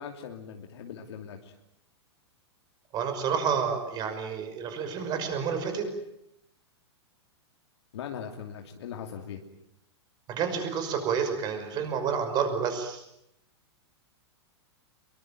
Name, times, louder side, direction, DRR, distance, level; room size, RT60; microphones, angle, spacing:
voice 1, 0.0-1.5 7.9-9.4, left 8 dB, 75° left, 3 dB, 2.9 m, -40 dB
voice 2, 2.9-5.9 10.3-13.0, right 6 dB, 30° right, 8 dB, 5.8 m, -29 dB
25.0 x 23.0 x 9.1 m, 0.81 s
hypercardioid pair, 145°, 14 cm